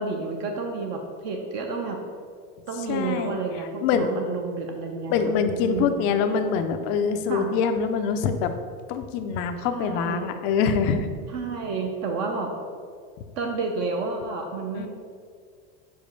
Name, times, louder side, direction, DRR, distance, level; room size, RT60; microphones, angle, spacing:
voice 1, 0.0-2.0 2.7-5.3 5.6-6.1 7.3-7.5 9.6-10.3 11.3-12.5 13.4-14.9, right 4 dB, 40° right, 3 dB, 0.6 m, -30 dB
voice 2, 2.9-4.1 5.1-8.5 8.9-11.1 14.7-14.9, left 6 dB, 35° left, 8 dB, 0.4 m, -25 dB
5.1 x 5.1 x 5.3 m, 2.1 s
supercardioid pair, 170°, 31 cm